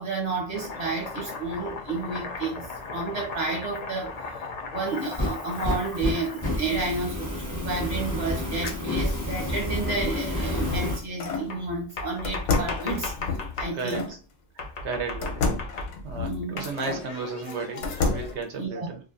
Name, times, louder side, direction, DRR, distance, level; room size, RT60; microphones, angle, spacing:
voice 1, 0.0-2.7 2.9-4.1 4.7-13.1 13.6-14.0 16.2-16.7 18.6-18.9, right 3 dB, 40° right, -1 dB, 0.9 m, -31 dB
Domestic sounds home sounds, 0.5-6.9 8.6-9.8 11.5-13.8 14.6-16.1 16.6-18.3, left 4 dB, 60° left, 0.4 m, -37 dB
Fire, 4.9-11.0, left 1 dB, 20° right, 0.7 m, -30 dB
sound 1, 10.3-11.5 12.2-14.1 15.2-17.1 17.5-18.4, left 3 dB, 85° left, 1.0 m, -30 dB
voice 2, 13.7-14.1 14.5-15.5 16.0-19.0, right 4 dB, 70° right, 4 dB, 0.8 m, -34 dB
2.4 x 2.4 x 2.4 m, 0.36 s
omnidirectional pair, 1.2 m